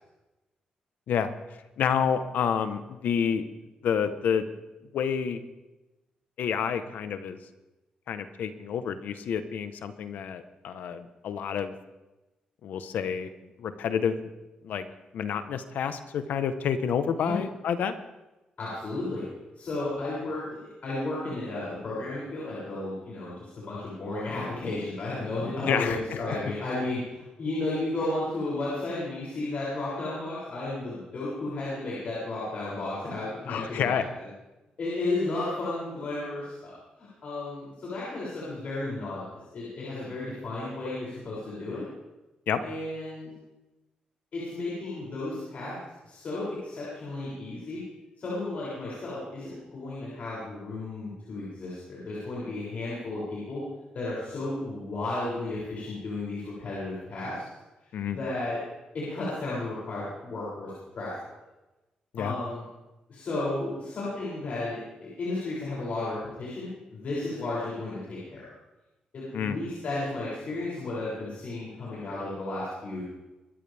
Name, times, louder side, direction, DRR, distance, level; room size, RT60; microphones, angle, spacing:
voice 1, 1.8-3.4 3.8-4.5 4.9-5.4 6.4-7.4 8.1-11.7 12.6-13.3 13.6-14.2 14.6-14.8 15.1-17.9 25.7-26.2 33.5-34.1 42.5-42.6 57.9-58.2 62.1-62.4 69.3-69.6, left 7 dB, 80° left, 10 dB, 1.2 m, -29 dB
voice 2, 18.6-19.2 19.6-34.0 34.8-39.2 39.5-41.9 42.6-43.3 44.3-45.8 46.0-47.8 48.2-53.6 53.9-57.4 58.1-58.6 58.9-61.1 62.2-62.6 63.1-68.4 69.1-73.0, left 2 dB, 60° left, -7 dB, 7.2 m, -33 dB
25.5 x 13.5 x 3.6 m, 1.0 s
cardioid pair, 75°, 3 cm